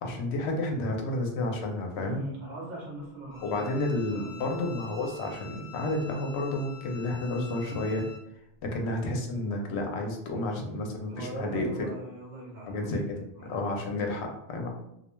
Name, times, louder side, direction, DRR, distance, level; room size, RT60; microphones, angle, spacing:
voice 1, 0.0-2.2 3.4-8.0 8.6-11.7 12.7-13.0 13.4-14.7, left 2 dB, 85° left, 2 dB, 0.8 m, -31 dB
voice 2, 2.0-4.5 11.1-13.8, right 2 dB, 50° right, -4 dB, 0.9 m, -41 dB
Bowed string instrument, 3.3-8.2, left 5 dB, 45° left, 0.4 m, -48 dB
2.3 x 2.1 x 3.0 m, 0.81 s
omnidirectional pair, 1.1 m